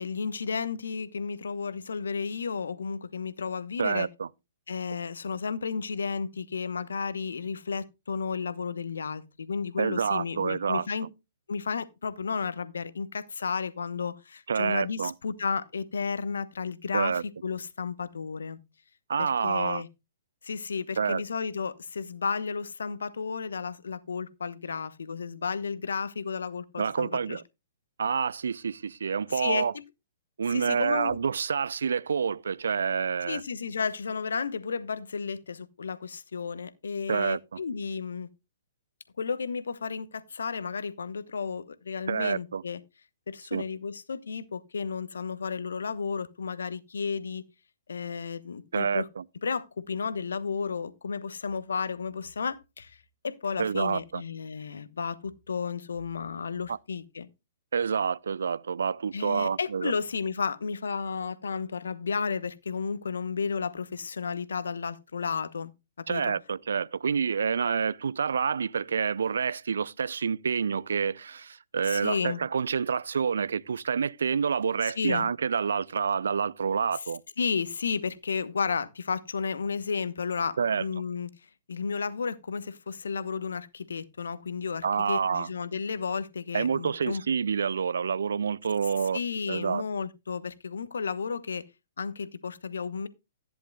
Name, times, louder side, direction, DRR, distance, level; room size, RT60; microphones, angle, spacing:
voice 1, 0.0-4.1 4.7-11.1 11.5-18.6 19.2-19.9 20.4-27.4 29.3-29.8 30.5-31.2 33.3-38.3 39.2-42.8 43.3-47.4 47.9-49.1 49.4-53.0 53.2-57.3 59.1-65.7 66.0-66.2 71.8-72.4 74.8-75.3 77.4-81.3 81.7-87.2 89.1-91.6 92.0-93.1, left 5 dB, 70° left, 1.1 m, -33 dB
voice 2, 3.8-4.3 9.8-10.8 14.5-15.1 16.9-17.2 19.1-19.8 21.0-21.2 26.8-27.4 28.0-29.7 30.4-33.4 37.1-37.6 42.1-42.6 43.5-43.6 48.7-49.2 53.6-54.2 56.7-56.8 57.7-59.9 66.1-77.2 80.6-80.8 84.8-85.5 86.5-89.2 89.5-89.8, right 6 dB, 65° right, 0.5 m, -28 dB
14.5 x 10.5 x 2.3 m
figure-of-eight pair, 120°, 0 cm